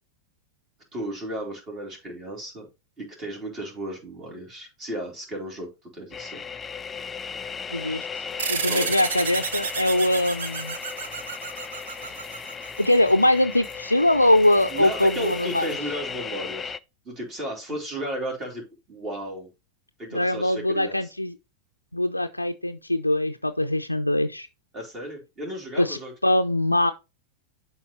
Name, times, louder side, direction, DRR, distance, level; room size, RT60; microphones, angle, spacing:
voice 1, 0.9-2.7 3.0-6.4 8.7-8.9 14.7-16.7 17.0-19.5 20.0-21.1 24.7-26.1, right 1 dB, 30° right, 3.2 m, -34 dB
sound 1, 6.1-16.8, left 6 dB, 15° left, 0.4 m, -36 dB
voice 2, 7.7-8.1 8.5-10.8 12.8-15.7 20.1-21.3 21.9-24.5 25.8-26.9, left 1 dB, 85° left, 0.4 m, -22 dB
sound 2, 8.2-15.7, right 4 dB, 45° right, 2.0 m, -51 dB
sound 3, 8.4-13.3, right 6 dB, 65° right, 0.9 m, -31 dB
11.0 x 4.5 x 3.1 m
figure-of-eight pair, 90°, 0 cm